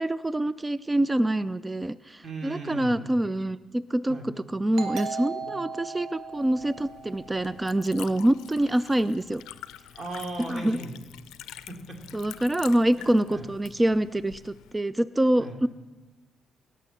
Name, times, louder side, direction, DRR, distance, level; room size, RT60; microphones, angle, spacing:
voice 1, 0.0-9.4 10.5-10.8 12.1-15.7, right 1 dB, 15° right, 16 dB, 0.4 m, -26 dB
voice 2, 2.2-3.1 4.1-4.3 5.4-5.5 9.9-11.0 11.5-12.0 13.0-13.4 15.4-15.6, right 2 dB, 40° right, 2 dB, 2.8 m, -38 dB
Doorbell, 4.7-8.1, right 5 dB, 75° right, 1.3 m, -37 dB
Liquid, 6.2-14.7, left 13 dB, 90° left, 0.4 m, -47 dB
18.0 x 6.6 x 7.1 m, 1.2 s
cardioid pair, 90°, 0 cm